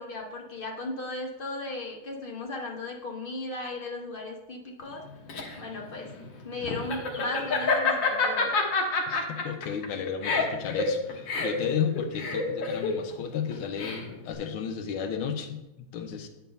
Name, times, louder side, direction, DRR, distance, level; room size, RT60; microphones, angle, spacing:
voice 1, 0.0-5.0 5.6-6.1 6.4-8.6, left 2 dB, 40° left, 1 dB, 0.8 m, -36 dB
Laughter, 4.9-14.3, left 4 dB, 65° left, 1.9 m, -28 dB
voice 2, 9.1-15.6 15.9-16.3, left 7 dB, 90° left, 7 dB, 1.6 m, -33 dB
9.0 x 4.7 x 5.2 m, 0.95 s
omnidirectional pair, 2.2 m